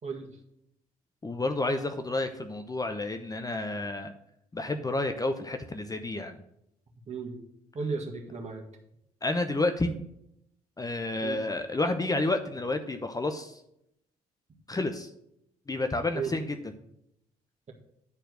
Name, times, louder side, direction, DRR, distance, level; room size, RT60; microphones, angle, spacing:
voice 1, 0.0-0.3 7.1-7.4 7.7-8.6 11.2-11.4 16.1-16.3, right 5 dB, 35° right, 2 dB, 1.9 m, -34 dB
voice 2, 1.2-4.1 4.5-6.4 9.2-10.0 10.8-13.6 14.7-15.1 15.7-16.6, left 2 dB, 20° left, 7 dB, 0.8 m, -30 dB
9.6 x 4.5 x 6.2 m, 0.78 s
figure-of-eight pair, 45°, 19 cm